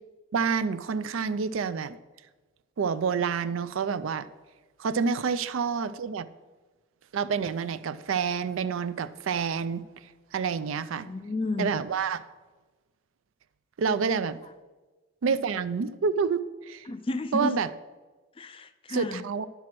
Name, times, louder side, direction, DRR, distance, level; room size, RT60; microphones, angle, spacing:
voice 1, 0.3-2.0 2.8-4.3 4.8-6.3 7.1-9.8 10.3-11.1 11.6-12.2 13.8-14.4 15.2-16.9 17.3-17.7 18.9-19.5, right 5 dB, 70° right, 15 dB, 0.4 m, -28 dB
voice 2, 11.0-11.7 16.9-17.5 18.4-19.2, left 2 dB, 25° left, 12 dB, 0.3 m, -32 dB
10.5 x 4.6 x 5.9 m, 1.2 s
head